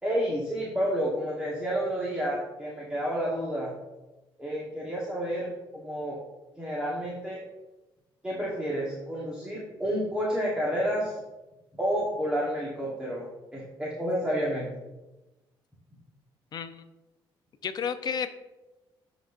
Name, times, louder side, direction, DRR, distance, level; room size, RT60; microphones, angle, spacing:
voice 1, 0.0-3.7 4.4-6.2 6.6-7.4 8.2-11.2 11.7-13.3 13.5-14.7, equal, 10° right, -5 dB, 1.2 m, -30 dB
voice 2, 16.5-16.8 17.6-18.3, left 7 dB, 45° left, 10 dB, 0.5 m, -31 dB
11.0 x 4.0 x 2.5 m, 1.1 s
cardioid pair, 110°, 9 cm